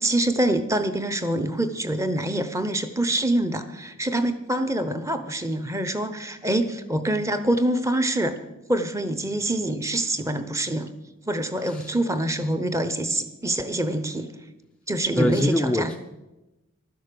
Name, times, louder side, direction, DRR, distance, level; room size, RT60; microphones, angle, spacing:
voice 1, 0.0-8.4 8.7-10.9 11.3-14.3 14.9-15.9, right 1 dB, 15° right, 11 dB, 0.7 m, -25 dB
voice 2, 11.6-11.9 15.2-16.0, left 1 dB, 5° left, 3 dB, 0.4 m, -24 dB
12.0 x 10.5 x 6.8 m, 1.0 s
head